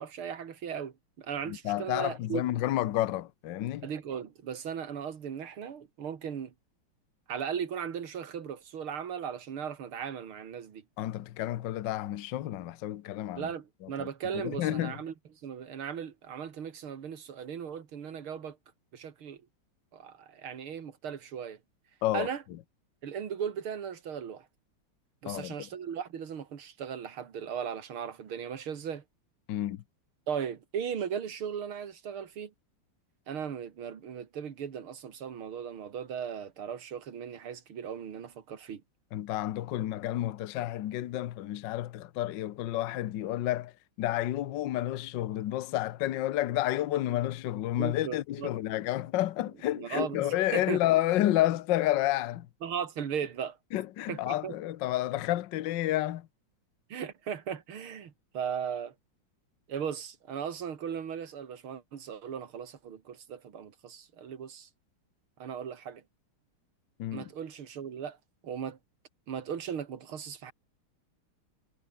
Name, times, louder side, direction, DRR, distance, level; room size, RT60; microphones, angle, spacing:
voice 1, 0.0-2.4 3.8-6.5 7.3-10.8 13.4-15.1 15.4-18.6 18.9-19.4 19.9-21.6 22.1-22.4 23.0-24.5 25.2-29.0 30.3-32.5 33.3-38.8 47.8-48.5 49.7-50.8 52.6-53.6 54.1-54.6 56.9-58.9 59.7-64.7 65.4-66.0 67.1-68.2 68.4-68.8 69.3-70.5, right 7 dB, 80° right, 2.8 m, -37 dB
voice 2, 1.5-3.9 11.0-13.5 13.8-14.1 14.3-14.9 22.0-22.3 25.3-25.7 29.5-29.8 39.1-43.7 44.0-52.5 53.7-56.3 67.0-67.3, left 14 dB, 65° left, 1.4 m, -30 dB
omnidirectional pair, 2.3 m